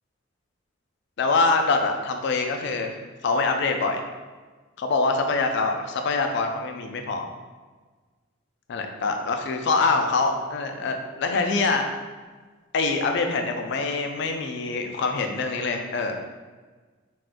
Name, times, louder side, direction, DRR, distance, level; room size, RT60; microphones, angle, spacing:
voice 1, 1.2-3.0 3.2-4.0 4.8-7.3 8.7-11.8 12.7-16.2, left 3 dB, 60° left, 4 dB, 0.3 m, -24 dB
2.4 x 2.3 x 3.5 m, 1.4 s
head